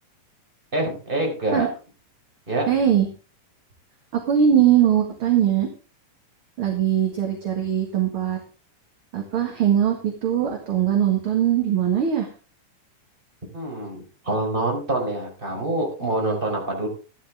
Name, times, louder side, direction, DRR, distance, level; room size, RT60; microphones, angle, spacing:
voice 1, 0.7-1.7 2.5-2.7 13.5-16.9, right 2 dB, 15° right, 0 dB, 4.9 m, -26 dB
voice 2, 2.7-3.1 4.1-5.7 6.6-8.4 9.1-12.3, right 9 dB, 45° right, 2 dB, 2.4 m, -21 dB
14.5 x 11.5 x 3.6 m, 0.35 s
omnidirectional pair, 3.8 m